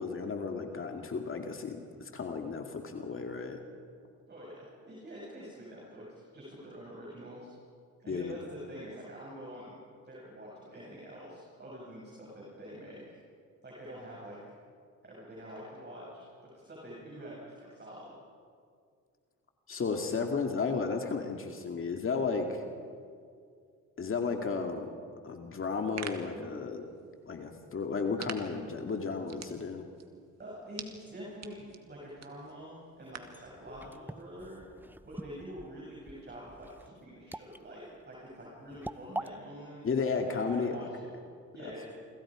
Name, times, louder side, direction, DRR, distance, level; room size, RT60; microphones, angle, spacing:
voice 1, 0.0-3.6 8.1-8.4 19.7-22.6 24.0-24.9 25.2-26.9 27.3-29.9 39.8-40.9, left 4 dB, 45° left, 4 dB, 2.3 m, -33 dB
voice 2, 4.3-7.5 8.0-9.8 10.0-13.2 13.6-14.4 15.0-16.2 16.5-18.1 30.4-34.6 35.1-39.9 40.2-41.1 41.5-41.9, equal, 35° right, -5 dB, 7.1 m, -46 dB
sound 1, 25.6-33.4, right 7 dB, 60° right, 2.1 m, -49 dB
sound 2, 33.0-39.3, right 1 dB, 5° right, 0.8 m, -44 dB
27.5 x 26.0 x 5.0 m, 2.2 s
cardioid pair, 90°, 30 cm